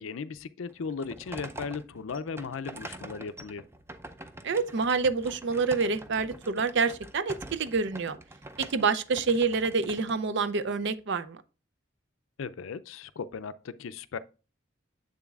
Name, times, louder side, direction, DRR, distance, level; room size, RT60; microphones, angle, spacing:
voice 1, 0.0-3.6 12.4-14.2, left 5 dB, 80° left, 0.4 m, -37 dB
sound 1, 0.7-10.9, right 2 dB, 15° right, 0.5 m, -45 dB
voice 2, 4.4-8.2 8.6-11.4, right 4 dB, 60° right, 0.5 m, -27 dB
7.5 x 7.1 x 2.4 m
head